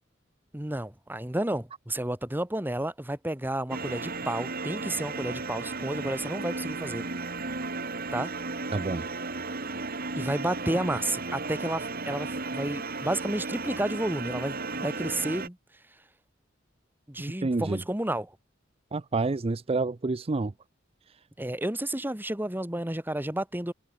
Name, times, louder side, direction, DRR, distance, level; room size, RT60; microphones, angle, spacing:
voice 1, 0.5-7.1 8.1-8.3 10.2-15.6 17.1-18.3 21.4-23.7, right 1 dB, 10° right, 1.7 m, -31 dB
sound 1, 3.7-15.5, right 3 dB, 50° right, 4.2 m, -34 dB
voice 2, 8.7-9.1 17.4-17.8 18.9-20.5 21.1-21.2, right 3 dB, 30° right, 0.5 m, -28 dB
head